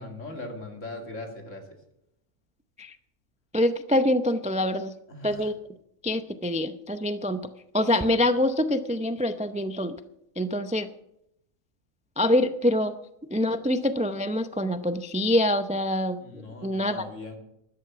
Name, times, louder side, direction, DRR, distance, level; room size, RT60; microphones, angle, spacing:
voice 1, 0.0-1.6 5.1-5.5 16.2-17.4, left 2 dB, 65° left, 3 dB, 3.0 m, -39 dB
voice 2, 3.5-4.9 5.2-5.5 6.0-7.4 7.7-9.9 10.4-10.9 12.2-12.9 13.3-16.2 16.6-17.1, left 1 dB, 10° right, 10 dB, 0.3 m, -25 dB
13.0 x 11.5 x 6.1 m, 0.79 s
omnidirectional pair, 1.4 m